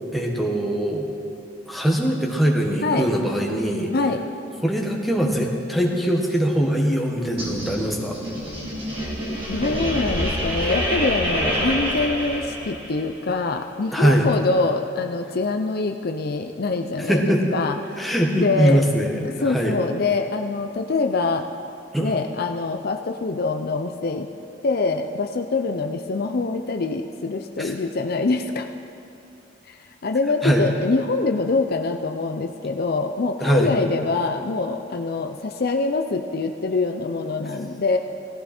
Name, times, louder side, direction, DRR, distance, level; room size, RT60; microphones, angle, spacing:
voice 1, 0.1-1.1 1.7-3.9 4.6-8.2 13.9-14.3 17.1-17.4 18.0-19.7 21.9-22.1 27.6-27.7 30.4-30.7 33.4-33.7, equal, ahead, -1 dB, 1.5 m, -22 dB
voice 2, 3.9-4.3 9.5-18.1 18.4-18.8 19.4-21.5 22.0-24.3 24.6-28.7 29.7-29.8 30.0-38.0, left 3 dB, 55° left, 5 dB, 0.6 m, -24 dB
sound 1, 7.4-13.0, equal, 30° right, 3.0 m, -27 dB
17.5 x 14.5 x 4.4 m, 2.9 s
head